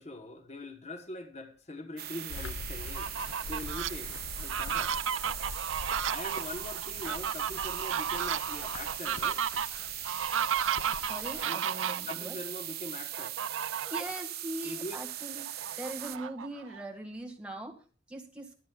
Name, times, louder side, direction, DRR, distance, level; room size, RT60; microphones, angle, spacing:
voice 1, 0.0-5.0 5.9-9.5 11.4-11.6 12.1-13.4 14.6-15.0, left 1 dB, 35° left, 1.1 m, -43 dB
sound 1, 2.0-16.2, right 13 dB, 50° right, 0.7 m, -40 dB
sound 2, 2.3-11.5, left 5 dB, 80° left, 0.5 m, -44 dB
Fowl, 2.8-3.9 4.4-12.1 13.1-14.2 14.6-14.7 15.1-16.8, right 8 dB, 90° right, 0.5 m, -33 dB
voice 2, 11.0-12.3 13.7-15.4 15.8-18.6, right 1 dB, 5° right, 1.8 m, -41 dB
23.0 x 9.5 x 2.3 m
head